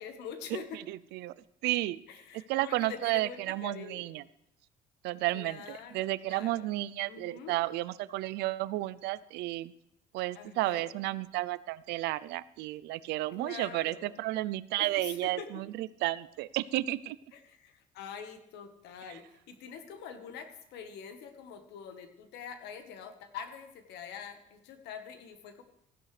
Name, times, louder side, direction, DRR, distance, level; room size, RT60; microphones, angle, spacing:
voice 1, 0.0-0.8 2.1-4.1 5.3-6.7 7.1-7.6 10.3-10.9 13.3-14.2 14.8-15.5 17.3-25.6, left 7 dB, 85° left, 8 dB, 1.3 m, -45 dB
voice 2, 0.9-1.3 1.6-2.0 2.5-4.2 5.0-9.7 10.1-17.2 19.1-19.2, right 17 dB, 85° right, 18 dB, 0.4 m, -32 dB
15.0 x 10.5 x 3.3 m, 0.78 s
cardioid pair, 110°, 17 cm